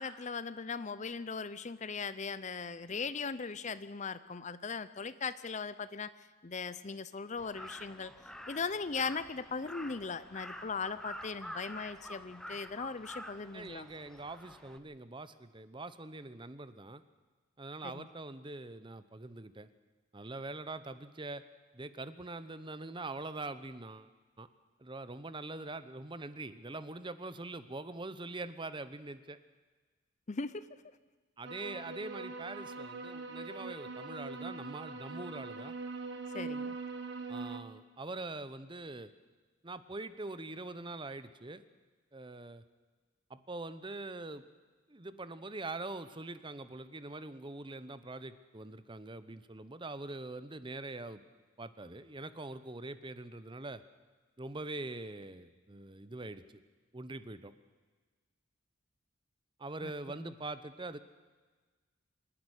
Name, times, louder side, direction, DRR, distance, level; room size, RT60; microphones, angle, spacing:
voice 1, 0.0-6.1 6.4-8.1 8.5-13.9 17.8-18.1 30.3-30.7 36.3-36.8 59.8-59.9 60.2-60.3, left 5 dB, 35° left, 15 dB, 0.6 m, -39 dB
Crow, 7.4-14.8, equal, 5° left, 0.9 m, -48 dB
voice 2, 13.5-17.0 17.6-19.7 20.1-21.4 21.7-24.1 24.4-24.5 24.8-29.4 31.4-35.8 37.3-39.1 39.6-41.6 42.1-42.6 43.3-44.5 44.9-51.2 51.6-53.8 54.4-56.6 56.9-57.5 59.6-61.0, right 2 dB, 25° right, 13 dB, 0.8 m, -43 dB
sound 1, 31.4-37.6, right 3 dB, 55° right, 1.6 m, -42 dB
26.0 x 11.0 x 10.0 m, 1.4 s
head